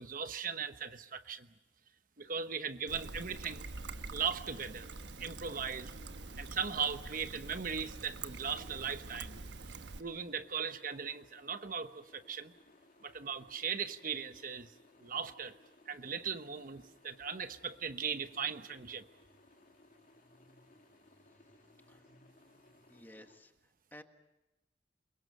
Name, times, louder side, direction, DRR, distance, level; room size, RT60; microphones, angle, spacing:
voice 1, 0.0-1.5 2.2-3.6 4.1-4.9 5.2-5.9 6.4-9.4 10.0-12.5 13.0-14.7 15.0-15.6 15.9-19.1, right 6 dB, 50° right, 9 dB, 1.0 m, -38 dB
Trickle dribble, 2.9-10.0, right 3 dB, 85° right, 1.2 m, -46 dB
sound 1, 3.5-23.4, left 2 dB, 50° left, 2.8 m, -64 dB
voice 2, 22.9-24.0, left 1 dB, 10° left, 6 dB, 1.5 m, -56 dB
28.5 x 23.0 x 6.6 m, 0.98 s
head